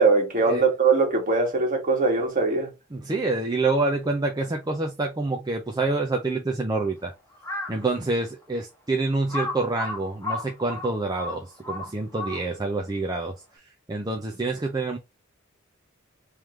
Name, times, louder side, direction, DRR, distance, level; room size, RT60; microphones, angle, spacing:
voice 1, 0.0-2.7, right 4 dB, 40° right, 1.7 m, -21 dB
voice 2, 2.9-7.1 7.7-13.6 13.9-15.0, right 3 dB, 20° right, 0.6 m, -27 dB
Crow, 7.3-7.8 8.4-8.5 9.3-12.7, left 2 dB, 15° left, 1.2 m, -33 dB
3.7 x 3.2 x 3.1 m
head